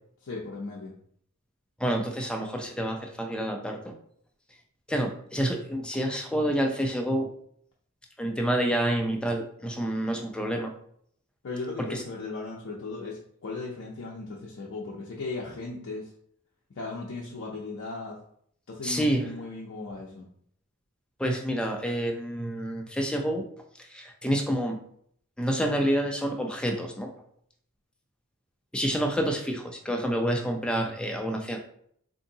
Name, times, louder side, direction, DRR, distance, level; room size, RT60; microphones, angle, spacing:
voice 1, 0.2-1.0 11.4-16.1 16.7-18.2 18.7-20.3, left 3 dB, 60° left, -3 dB, 0.5 m, -37 dB
voice 2, 1.8-3.8 4.9-7.3 8.2-10.7 11.8-12.0 18.8-19.3 21.2-23.4 23.9-24.8 25.4-27.1 28.7-31.6, right 1 dB, 5° left, 2 dB, 0.4 m, -28 dB
3.7 x 2.6 x 2.7 m, 0.66 s
head